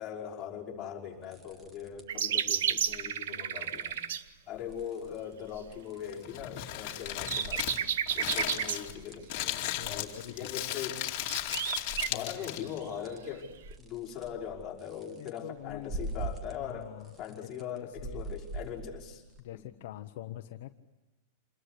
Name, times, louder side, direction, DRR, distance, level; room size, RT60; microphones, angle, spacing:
voice 1, 0.0-4.0 4.5-7.8 8.1-11.0 12.1-19.2 19.5-19.7, left 8 dB, 20° left, -5 dB, 5.6 m, -41 dB
sound 1, 1.2-2.2 2.5-3.0 3.6-4.2 4.5-6.5 6.8-16.7 17.0-19.4, right 2 dB, 20° right, 1.8 m, -45 dB
sound 2, 2.1-4.2 6.9-8.8 11.2-12.1 13.4-13.5, right 9 dB, 85° right, 0.9 m, -32 dB
Crumpling crinkling, 6.0-12.8, left 14 dB, 45° left, 2.4 m, -36 dB
voice 2, 9.7-10.6 12.1-12.5 12.8-12.9 15.2-16.0 16.6-18.3 19.4-20.8, left 13 dB, 60° left, 6 dB, 1.0 m, -44 dB
27.5 x 21.0 x 8.4 m, 1.0 s
supercardioid pair, 160°, 0 cm